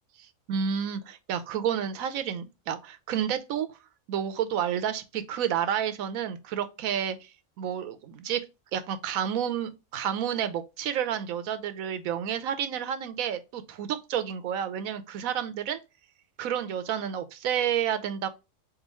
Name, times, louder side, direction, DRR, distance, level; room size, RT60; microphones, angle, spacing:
voice 1, 0.5-3.7 4.1-7.3 7.6-8.4 8.7-15.8 16.4-18.3, right 9 dB, 90° right, 1.1 m, -30 dB
4.0 x 3.6 x 3.0 m
omnidirectional pair, 1.4 m